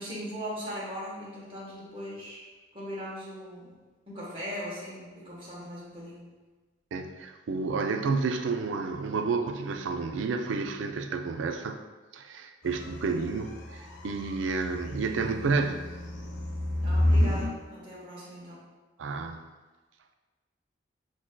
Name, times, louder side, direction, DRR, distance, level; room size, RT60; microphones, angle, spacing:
voice 1, 0.0-2.4 2.7-3.8 4.1-6.3 16.8-18.7, equal, 30° right, -7 dB, 1.1 m, -39 dB
voice 2, 6.9-11.8 12.1-15.9 19.0-19.5, right 4 dB, 80° right, 6 dB, 0.3 m, -30 dB
sound 1, 12.6-17.5, left 1 dB, 70° left, 0.6 m, -30 dB
6.0 x 2.5 x 2.2 m, 1.3 s
head